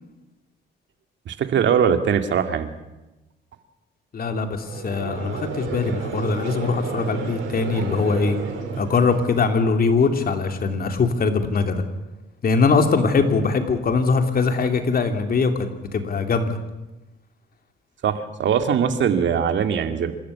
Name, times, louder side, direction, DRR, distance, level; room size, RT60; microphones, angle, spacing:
voice 1, 1.3-2.7 18.0-20.1, right 7 dB, 65° right, 8 dB, 2.3 m, -21 dB
voice 2, 4.1-8.4 8.8-11.8 12.4-16.6, left 4 dB, 50° left, 6 dB, 3.0 m, -21 dB
Conversation / Crowd, 4.6-9.9, right 5 dB, 85° right, 4.5 m, -32 dB
27.0 x 13.5 x 8.5 m, 1.0 s
cardioid pair, 90°, 20 cm